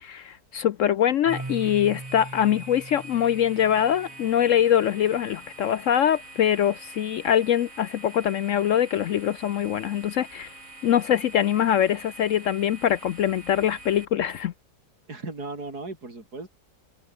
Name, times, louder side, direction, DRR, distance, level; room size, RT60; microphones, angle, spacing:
voice 1, 0.0-10.5 10.8-14.5, left 10 dB, 70° left, 0.8 m, -23 dB
Marimba xylophone, 1.2-5.1, right 2 dB, 15° right, 0.8 m, -40 dB
sound 1, 1.3-14.1, right 2 dB, 50° right, 7.6 m, -45 dB
voice 2, 15.1-16.5, right 3 dB, 65° right, 5.0 m, -37 dB
omnidirectional pair, 1.8 m